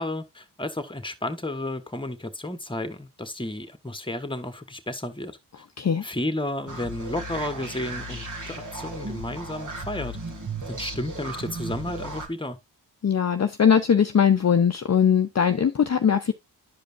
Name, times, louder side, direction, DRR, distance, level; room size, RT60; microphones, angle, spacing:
voice 1, 0.0-5.4 6.0-10.2 10.7-12.6, left 1 dB, 10° left, 1.4 m, -32 dB
sound 1, 6.7-12.3, right 2 dB, 45° right, 2.0 m, -35 dB
voice 2, 13.0-16.3, left 7 dB, 40° left, 0.7 m, -20 dB
11.5 x 5.1 x 2.5 m
cardioid pair, 50°, 43 cm